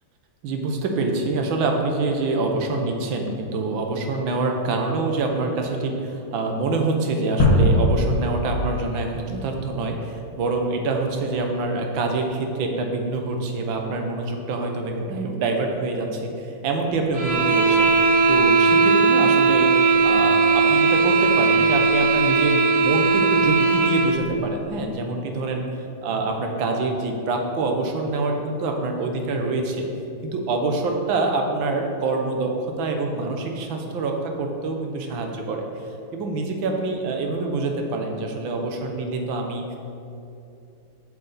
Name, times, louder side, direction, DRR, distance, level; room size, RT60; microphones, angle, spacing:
voice 1, 0.4-19.7 20.0-25.6 26.0-29.9 30.2-35.7 36.1-39.6, right 3 dB, 80° right, 3 dB, 1.6 m, -26 dB
sound 1, 7.4-10.3, left 1 dB, 75° left, 2.1 m, -22 dB
sound 2, 17.1-24.2, right 4 dB, 45° right, 1.1 m, -18 dB
7.7 x 7.5 x 4.1 m, 2.7 s
omnidirectional pair, 2.2 m